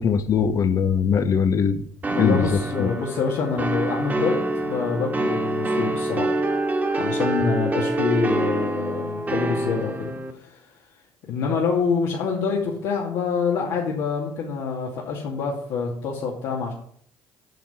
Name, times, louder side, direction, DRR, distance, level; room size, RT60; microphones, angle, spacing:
voice 1, 0.0-1.8 2.1-2.9, left 6 dB, 50° left, 11 dB, 1.2 m, -21 dB
sound 1, 2.0-10.3, right 2 dB, 25° right, 2.0 m, -26 dB
voice 2, 2.2-6.4 7.0-10.1 10.4-10.6 11.3-16.7, left 5 dB, 75° left, -4 dB, 2.4 m, -26 dB
9.2 x 5.6 x 8.0 m, 0.64 s
supercardioid pair, 75°, 7 cm